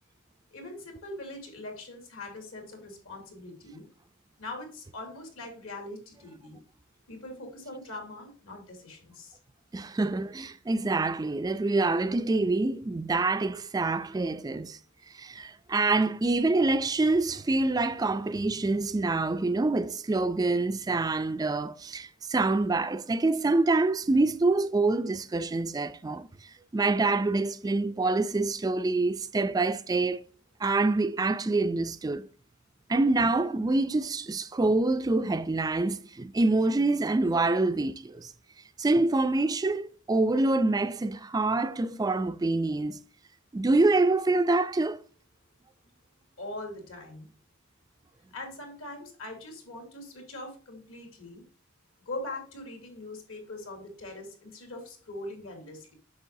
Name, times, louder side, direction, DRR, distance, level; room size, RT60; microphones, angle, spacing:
voice 1, 0.5-3.9 4.4-6.6 7.1-9.4 46.4-47.3 48.3-51.4 52.1-55.9, left 2 dB, 75° left, 2.8 m, -42 dB
voice 2, 9.7-14.8 15.1-30.2 30.6-32.3 32.9-38.3 38.8-43.0 43.5-45.0, right 2 dB, 20° right, 0.3 m, -26 dB
8.3 x 6.3 x 2.7 m
head